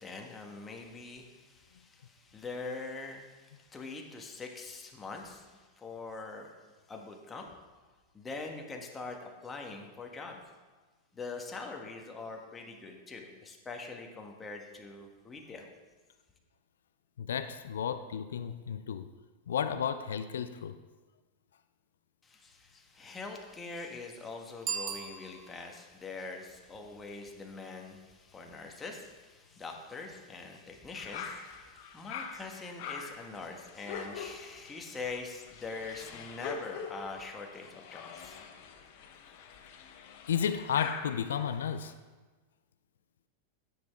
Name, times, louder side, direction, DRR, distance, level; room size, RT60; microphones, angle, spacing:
voice 1, 0.0-6.5 6.9-7.5 8.1-10.4 11.1-15.7 22.2-38.4, left 3 dB, 20° left, 2 dB, 1.5 m, -43 dB
voice 2, 17.2-19.1 19.5-20.8 40.3-41.9, left 8 dB, 75° left, 11 dB, 0.4 m, -33 dB
Bicycle bell, 24.6-25.8, right 6 dB, 35° right, 1.1 m, -38 dB
sound 1, 30.9-41.9, left 6 dB, 55° left, 0.9 m, -44 dB
9.4 x 7.8 x 3.6 m, 1.3 s
hypercardioid pair, 100°, 0 cm